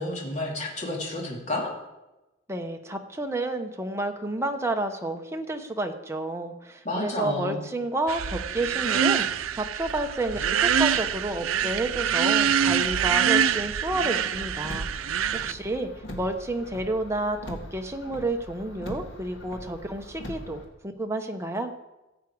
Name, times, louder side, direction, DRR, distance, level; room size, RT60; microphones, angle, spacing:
voice 1, 0.0-1.7 6.8-7.6, left 1 dB, 35° left, -2 dB, 2.7 m, -30 dB
voice 2, 2.5-15.9 16.2-20.6 21.0-21.7, right 2 dB, 15° right, 4 dB, 0.9 m, -30 dB
sound 1, 8.1-15.5, right 8 dB, 90° right, 0.5 m, -25 dB
Car, 14.3-20.7, equal, 70° left, 2.0 m, -41 dB
14.5 x 8.3 x 4.7 m, 1.0 s
head